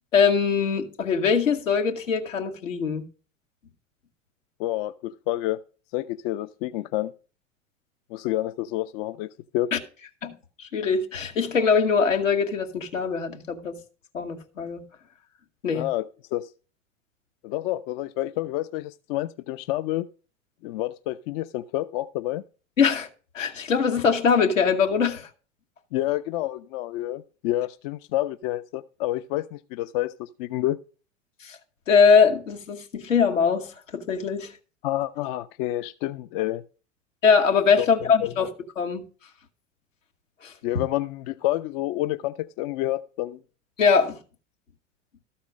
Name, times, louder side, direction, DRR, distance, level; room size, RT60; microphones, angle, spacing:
voice 1, 0.1-3.0 9.7-9.8 10.2-10.3 10.6-13.8 14.1-14.8 15.6-15.9 22.8-23.1 23.3-25.3 31.4-31.6 31.9-34.5 37.2-38.5 38.8-39.0 40.4-40.5 43.8-44.2, left 5 dB, 85° left, 1.4 m, -22 dB
voice 2, 4.6-5.6 5.9-7.1 8.1-9.7 15.7-16.5 17.4-20.1 20.6-22.4 25.9-30.8 34.8-36.6 37.8-38.3 40.6-43.4, left 15 dB, 50° left, 0.5 m, -29 dB
13.0 x 4.3 x 6.1 m
hypercardioid pair, 85°, 38 cm